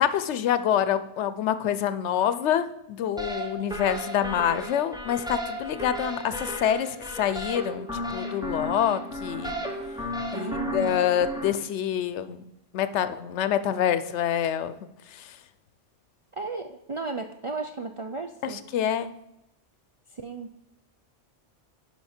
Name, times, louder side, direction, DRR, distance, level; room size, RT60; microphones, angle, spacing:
voice 1, 0.0-9.6 10.3-14.7 15.1-15.4 18.4-19.1, left 9 dB, 85° left, 13 dB, 0.9 m, -26 dB
sound 1, 3.2-11.5, equal, 5° right, 0.9 m, -34 dB
voice 2, 10.3-11.0 16.3-18.6 20.1-20.5, right 4 dB, 55° right, 4 dB, 0.3 m, -34 dB
10.5 x 5.2 x 4.3 m, 0.86 s
omnidirectional pair, 1.1 m